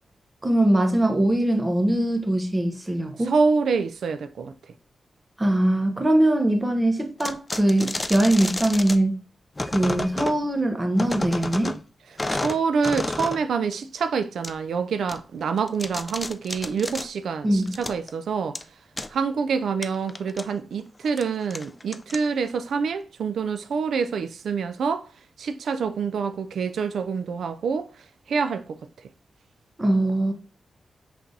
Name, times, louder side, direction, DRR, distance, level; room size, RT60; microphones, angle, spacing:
voice 1, 0.4-3.3 5.4-9.2 9.7-11.8 17.4-17.8 29.8-30.3, right 1 dB, 20° right, 0.9 m, -22 dB
voice 2, 3.2-4.5 9.8-10.0 12.3-18.6 19.1-25.1 25.4-28.8, right 5 dB, 85° right, 0.3 m, -26 dB
sound 1, 7.2-9.0 9.6-10.4 11.0-11.8 12.2-13.4 13.7-13.8 14.4-14.5 15.1-15.2 15.6-17.1 17.6-18.1 18.6-18.7 19.0-19.1 19.8-20.4 21.1-21.2 21.5-22.5, left 2 dB, 20° left, 0.3 m, -31 dB
5.8 x 3.3 x 2.6 m
wide cardioid pair, 120°, 0 cm